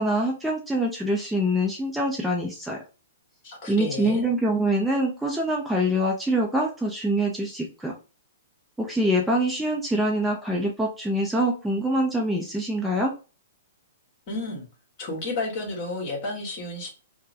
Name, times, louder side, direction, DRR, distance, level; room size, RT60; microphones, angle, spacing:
voice 1, 0.0-2.8 3.7-8.0 8.8-13.1, right 1 dB, 5° right, -1 dB, 0.5 m, -25 dB
voice 2, 3.4-4.3 14.3-14.6 15.0-16.9, left 2 dB, 40° left, 1 dB, 1.7 m, -31 dB
4.4 x 2.1 x 2.7 m, 0.34 s
hypercardioid pair, 140°, 0 cm